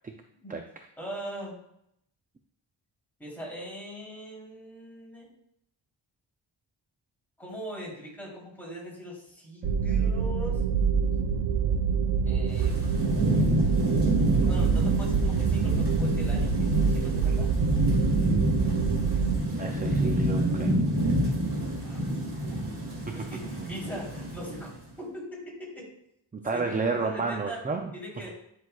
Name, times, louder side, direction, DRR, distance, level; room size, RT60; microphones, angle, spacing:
voice 1, 1.0-1.6 3.2-5.3 7.4-10.6 12.2-12.8 14.4-17.5 21.8-22.0 22.3-22.6 23.1-24.7 25.0-25.9 26.5-27.6 27.9-28.4, right 1 dB, 5° left, -6 dB, 3.2 m, -40 dB
sound 1, 9.6-19.4, right 6 dB, 80° right, 0.7 m, -26 dB
Thunderstorm / Rain, 12.5-24.8, right 1 dB, 55° right, 2.6 m, -28 dB
voice 2, 19.5-20.7 23.1-23.2 26.3-27.9, right 4 dB, 20° right, 4 dB, 0.4 m, -31 dB
10.5 x 6.2 x 2.3 m, 0.76 s
wide cardioid pair, 145°, 47 cm